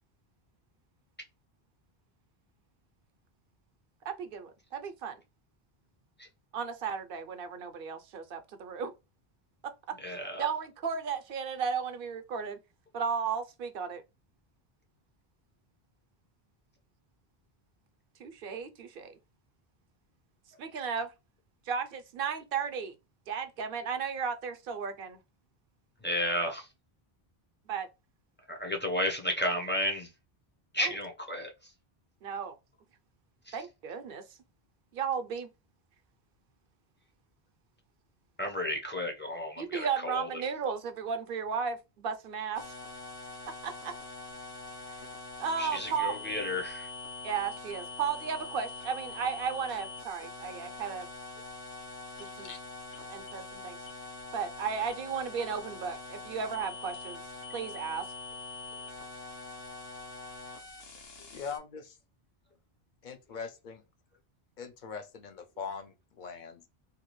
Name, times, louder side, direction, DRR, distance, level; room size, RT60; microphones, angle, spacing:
voice 1, 4.1-5.2 6.5-8.9 10.4-12.6 12.9-14.0 18.2-19.2 20.6-21.1 21.7-22.9 23.3-25.2 27.7-27.9 30.8-30.9 32.2-32.5 33.5-34.2 34.9-35.5 39.6-42.7 43.6-43.9 45.4-46.1 47.2-51.1 52.2-52.5 53.1-53.8 54.3-57.2 57.5-58.1, right 6 dB, 65° right, 0.7 m, -34 dB
voice 2, 10.0-10.4 26.0-26.7 28.5-30.1 30.7-31.5 33.5-33.6 38.4-40.3 45.6-46.9 58.7-58.8, left 1 dB, 15° left, 0.5 m, -32 dB
sound 1, 42.5-61.6, left 3 dB, 75° left, 1.0 m, -44 dB
voice 3, 52.1-52.6 61.3-62.0 63.0-63.8 64.6-66.7, left 6 dB, 60° left, 0.6 m, -42 dB
2.7 x 2.3 x 2.9 m
omnidirectional pair, 1.0 m